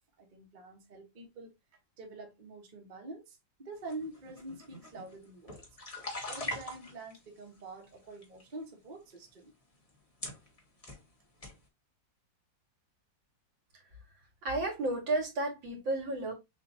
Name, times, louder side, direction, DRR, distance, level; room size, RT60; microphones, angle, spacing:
voice 1, 0.2-1.5 2.0-5.7 6.3-9.5, right 2 dB, 30° right, 1.1 m, -46 dB
sound 1, 3.9-7.2 7.8-8.4 9.2-9.3 9.9-10.0 10.2-11.0 11.4-11.6, left 1 dB, 25° left, 1.1 m, -42 dB
voice 2, 14.4-16.3, right 2 dB, 90° right, 2.5 m, -32 dB
6.4 x 2.6 x 2.7 m
omnidirectional pair, 2.0 m